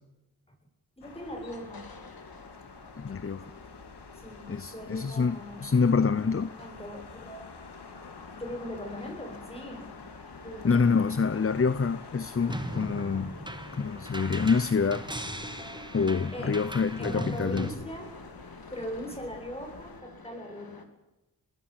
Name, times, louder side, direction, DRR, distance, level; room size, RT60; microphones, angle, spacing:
sound 1, 1.0-20.0, left 4 dB, 85° left, 2.7 m, -48 dB
voice 1, 1.0-1.8 4.1-5.8 6.6-7.5 8.3-9.8 10.4-11.2 16.3-16.6 17.0-18.1 18.4-20.9, equal, 15° left, 7.9 m, -40 dB
sound 2, 1.1-20.8, left 3 dB, 65° left, 3.1 m, -51 dB
voice 2, 3.0-3.5 4.5-6.5 10.6-13.3 13.7-15.1 15.9-17.7, left 5 dB, 35° left, 0.7 m, -26 dB
sound 3, 12.5-17.7, right 1 dB, 10° right, 2.1 m, -38 dB
25.0 x 21.0 x 7.6 m
wide cardioid pair, 70°, 39 cm